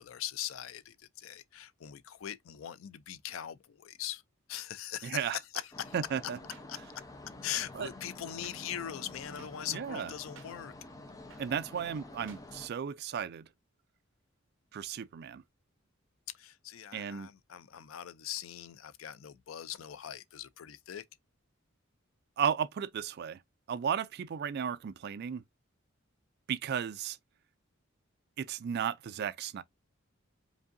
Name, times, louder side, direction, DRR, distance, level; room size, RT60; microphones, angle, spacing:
voice 1, 0.0-4.2 4.5-5.9 6.7-6.8 7.4-10.7 16.3-21.0, left 10 dB, 75° left, 0.4 m, -41 dB
voice 2, 5.0-5.4 5.9-6.4 7.8-7.9 9.7-10.1 11.4-13.5 14.7-15.4 16.9-17.3 22.4-23.4 23.7-25.4 26.5-27.2 28.4-29.6, right 8 dB, 50° right, 0.3 m, -34 dB
sound 1, 5.5-5.7 6.5-6.6 7.5-7.6 8.4-8.6 9.4-9.5 10.3-10.5 11.3-11.4 12.3-12.4, right 7 dB, 70° right, 0.8 m, -52 dB
sound 2, 5.7-12.7, left 2 dB, 15° left, 0.7 m, -49 dB
5.1 x 2.6 x 2.5 m
head